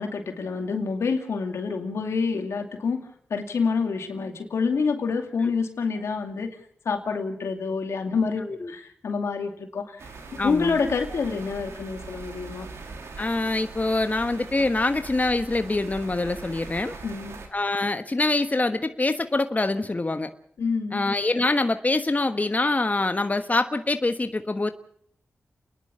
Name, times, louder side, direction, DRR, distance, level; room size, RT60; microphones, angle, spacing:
voice 1, 0.0-3.0 3.3-6.6 6.8-9.9 10.4-12.7 17.0-17.4 20.6-21.0, left 5 dB, 85° left, 5 dB, 2.5 m, -27 dB
sound 1, 10.0-17.5, right 4 dB, 90° right, 2.8 m, -41 dB
voice 2, 10.4-10.8 13.2-16.9 17.5-20.3 20.9-24.7, left 2 dB, 35° left, 9 dB, 1.3 m, -25 dB
29.0 x 11.0 x 8.5 m, 0.65 s
cardioid pair, 40°, 5 cm